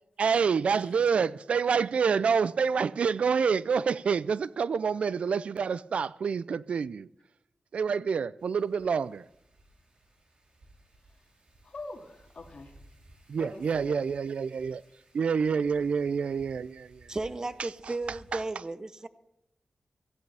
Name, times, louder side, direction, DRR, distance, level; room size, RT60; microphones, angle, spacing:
voice 1, 0.2-7.1 7.7-9.3 13.3-14.8 15.1-17.2 17.8-17.9 18.3-18.4, right 6 dB, 80° right, 0.4 m, -27 dB
voice 2, 0.7-1.1 11.6-12.8 13.4-14.0, left 3 dB, 60° left, 2.1 m, -44 dB
Wind, 8.4-18.4, right 1 dB, 60° right, 3.5 m, -58 dB
voice 3, 17.1-19.1, right 2 dB, 35° right, 0.7 m, -34 dB
16.5 x 14.5 x 3.4 m
cardioid pair, 70°, 2 cm